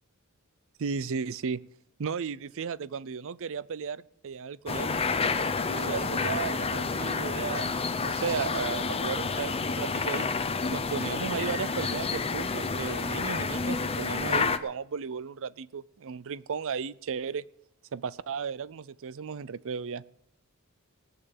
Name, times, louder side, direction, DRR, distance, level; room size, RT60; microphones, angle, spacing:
voice 1, 0.8-1.6 2.0-5.1 5.7-7.7 8.0-10.3 10.7-17.4 17.9-20.0, right 6 dB, 65° right, 20 dB, 0.5 m, -35 dB
sound 1, 4.7-14.6, left 4 dB, 25° left, 0.7 m, -29 dB
17.5 x 6.8 x 8.7 m, 0.73 s
head